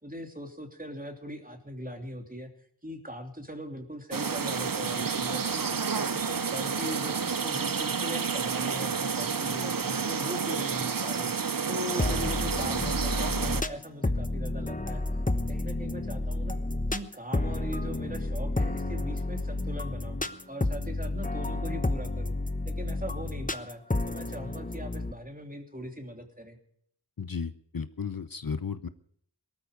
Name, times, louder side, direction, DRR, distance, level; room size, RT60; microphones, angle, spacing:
voice 1, 0.0-2.5 2.8-16.6 16.9-20.2 20.5-22.4 22.6-26.6, equal, 20° right, 4 dB, 3.0 m, -40 dB
sound 1, 4.1-13.6, right 5 dB, 55° right, 0.8 m, -30 dB
sound 2, 12.0-25.1, left 2 dB, 20° left, 1.1 m, -31 dB
voice 2, 27.2-28.9, left 5 dB, 55° left, 13 dB, 0.8 m, -34 dB
18.5 x 13.5 x 5.2 m, 0.64 s
wide cardioid pair, 45°, 41 cm